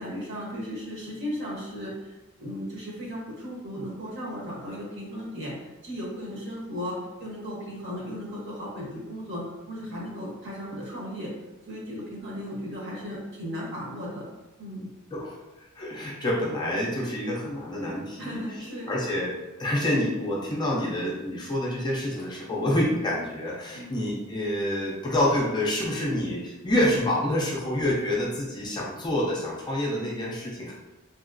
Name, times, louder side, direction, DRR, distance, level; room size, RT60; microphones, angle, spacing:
voice 1, 0.0-5.5 5.8-9.4 9.7-11.3 11.7-14.3 14.6-14.9 18.2-18.9 22.5-22.7 23.7-24.0, equal, 55° right, -5 dB, 1.0 m, -36 dB
voice 2, 15.8-18.4 18.9-19.3 19.6-30.7, left 1 dB, 20° left, -3 dB, 0.4 m, -27 dB
3.0 x 2.8 x 2.5 m, 1.1 s
head